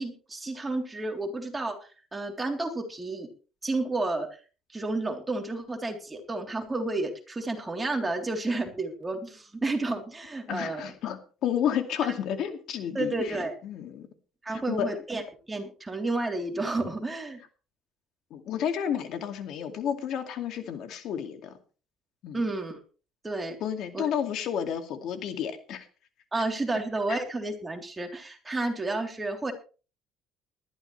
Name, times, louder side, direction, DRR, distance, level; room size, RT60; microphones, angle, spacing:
voice 1, 0.0-1.8 2.1-3.3 3.6-4.3 4.7-10.9 12.9-13.5 14.4-15.2 15.5-17.4 22.3-22.8 23.2-23.6 23.9-24.0 26.3-29.5, right 2 dB, 10° right, 2 dB, 3.6 m, -31 dB
voice 2, 10.5-14.1 14.5-15.0 18.3-21.6 22.2-22.5 23.6-25.9 26.4-26.5 27.1-27.2, left 9 dB, 60° left, 7 dB, 2.3 m, -31 dB
20.0 x 13.5 x 3.3 m, 0.36 s
cardioid pair, 145°, 0 cm